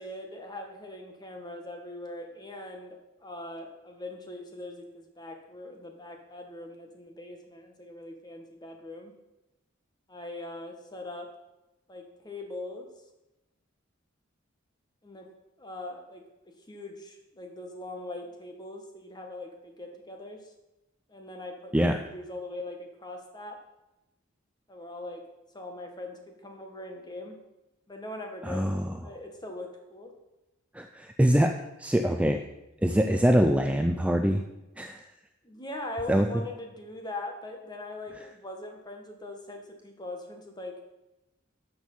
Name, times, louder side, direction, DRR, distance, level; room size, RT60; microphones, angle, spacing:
voice 1, 0.0-9.1 10.1-11.3 11.9-12.9 15.0-15.3 15.6-20.5 21.1-23.6 24.7-25.2 25.5-27.4 27.9-30.1 35.4-40.8, left 2 dB, 20° left, 3 dB, 1.5 m, -41 dB
voice 2, 28.4-28.9 30.7-32.4 32.8-34.5 34.8-35.0 36.1-36.3, equal, 5° right, 5 dB, 0.4 m, -24 dB
12.5 x 6.4 x 5.5 m, 0.96 s
head